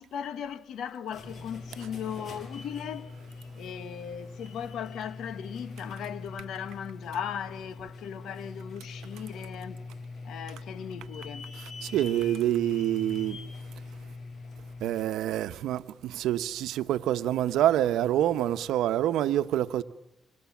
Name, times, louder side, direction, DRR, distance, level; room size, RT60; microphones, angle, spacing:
voice 1, 0.0-3.1 3.6-9.8 10.2-11.5, left 8 dB, 75° left, 1.4 m, -37 dB
sound 1, 0.9-15.2, left 3 dB, 50° left, 5.9 m, -43 dB
voice 2, 11.8-13.4 14.8-19.8, right 12 dB, 85° right, 1.0 m, -26 dB
27.0 x 26.0 x 7.3 m
cardioid pair, 90°, 0 cm